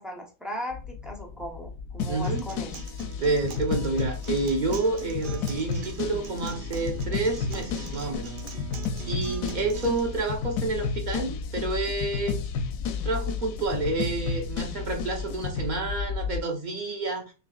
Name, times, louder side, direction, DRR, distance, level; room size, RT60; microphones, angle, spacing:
voice 1, 0.0-2.7, equal, ahead, 1 dB, 0.5 m, -37 dB
sound 1, 0.7-16.4, left 6 dB, 90° left, 0.5 m, -36 dB
sound 2, 2.0-15.7, left 5 dB, 70° left, 0.9 m, -33 dB
Acoustic guitar, 2.0-10.0, right 7 dB, 85° right, 0.4 m, -42 dB
voice 2, 2.1-2.4 3.2-8.3 9.0-12.4 13.0-17.3, right 3 dB, 35° right, 2 dB, 0.9 m, -29 dB
6.0 x 3.1 x 2.4 m, 0.32 s
omnidirectional pair, 1.7 m